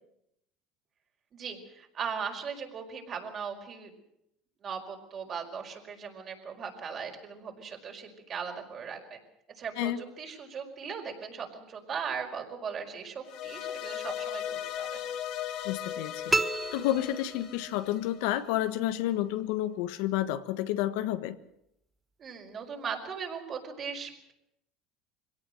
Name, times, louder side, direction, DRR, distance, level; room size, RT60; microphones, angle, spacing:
voice 1, 1.3-3.9 4.6-9.2 9.6-15.0 22.2-24.3, right 6 dB, 40° right, 3 dB, 5.1 m, -38 dB
sound 1, 13.2-18.5, left 10 dB, 60° left, 2.2 m, -37 dB
voice 2, 15.6-16.3 16.7-21.4, left 13 dB, 75° left, 11 dB, 1.3 m, -30 dB
sound 2, 16.3-17.9, right 2 dB, 10° right, 0.7 m, -31 dB
23.0 x 17.5 x 7.9 m, 0.79 s
supercardioid pair, 120°, 0 cm